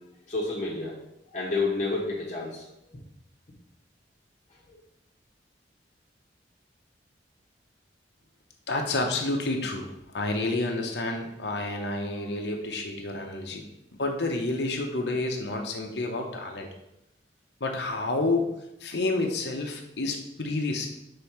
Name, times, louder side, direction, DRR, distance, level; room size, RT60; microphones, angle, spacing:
voice 1, 0.3-1.0 1.3-3.0 4.7-4.8, left 3 dB, 40° left, -5 dB, 1.1 m, -30 dB
voice 2, 8.7-13.6 14.0-16.7 17.6-18.5 18.8-20.9, left 2 dB, 70° left, 2 dB, 0.9 m, -29 dB
5.4 x 3.7 x 5.8 m, 0.84 s
head